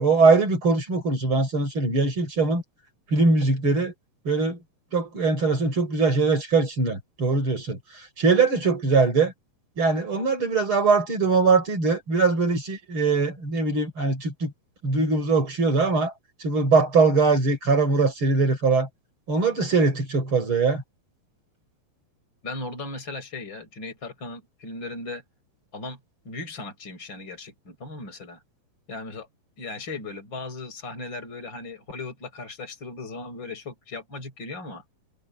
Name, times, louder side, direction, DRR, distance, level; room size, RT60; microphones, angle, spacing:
voice 1, 0.0-2.6 3.1-3.9 4.2-4.6 4.9-7.8 8.2-9.3 9.8-14.5 14.8-16.1 16.4-18.9 19.3-20.8, right 4 dB, 35° right, 6.6 m, -21 dB
voice 2, 22.4-25.2 25.7-26.0 26.2-28.4 28.9-29.3 29.6-34.8, left 3 dB, 30° left, 7.6 m, -37 dB
omnidirectional pair, 4.0 m